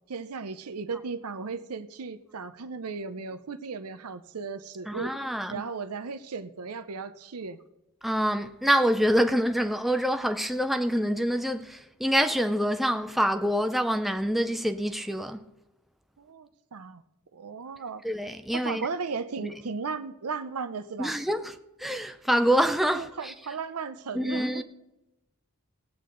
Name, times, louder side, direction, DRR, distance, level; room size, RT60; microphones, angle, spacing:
voice 1, 0.1-5.1 5.5-7.6 16.2-17.0 17.3-18.0 18.5-21.1 22.9-24.6, right 5 dB, 90° right, 0.6 m, -36 dB
voice 2, 4.9-5.6 8.0-15.4 18.0-18.9 19.4-19.5 21.0-23.3 24.1-24.6, equal, ahead, 0.4 m, -26 dB
17.5 x 8.5 x 3.9 m
head